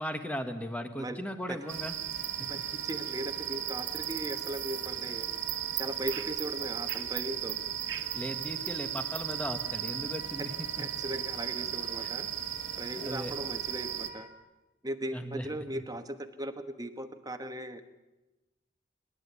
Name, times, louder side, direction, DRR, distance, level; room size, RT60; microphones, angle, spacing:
voice 1, 0.0-2.0 2.4-2.7 8.1-10.9 13.0-13.3 15.1-15.5 15.7-15.8, equal, 5° left, 7 dB, 1.5 m, -37 dB
Wind instrument woodwind instrument, 1.6-14.3, left 1 dB, 45° left, 3.5 m, -48 dB
sound 1, 1.7-14.1, right 11 dB, 70° right, 1.6 m, -36 dB
voice 2, 2.8-5.3 5.8-7.6 10.8-12.3 12.8-14.3 14.8-17.8, right 1 dB, 20° right, 8 dB, 1.2 m, -38 dB
27.5 x 11.5 x 8.4 m, 1.1 s
head